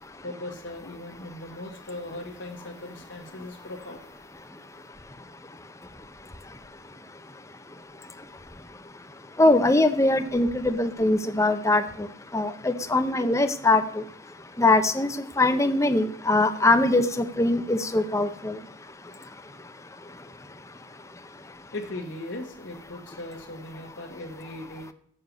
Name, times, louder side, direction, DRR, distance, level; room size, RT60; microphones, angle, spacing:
voice 1, 0.2-4.2 21.7-24.9, left 1 dB, 70° left, 1 dB, 1.5 m, -38 dB
voice 2, 9.4-11.8 12.3-13.8 14.6-15.1 15.4-18.6, left 2 dB, 15° left, 9 dB, 0.7 m, -22 dB
7.7 x 6.6 x 7.9 m, 0.65 s
head